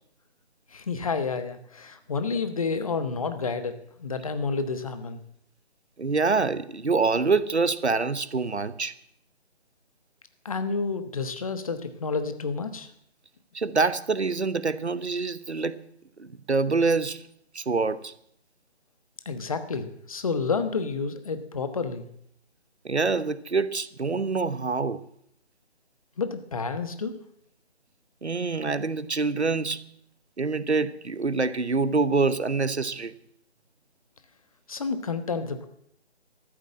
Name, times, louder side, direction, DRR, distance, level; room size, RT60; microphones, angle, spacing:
voice 1, 0.7-5.2 10.4-12.9 19.2-22.1 26.2-27.1 34.7-35.7, left 4 dB, 30° left, 1.2 m, -30 dB
voice 2, 6.0-8.9 13.5-15.8 16.2-17.2 17.5-18.1 22.8-25.0 28.2-29.8 30.4-33.1, right 4 dB, 75° right, 1.0 m, -26 dB
13.5 x 10.5 x 7.5 m
figure-of-eight pair, 150°, 33 cm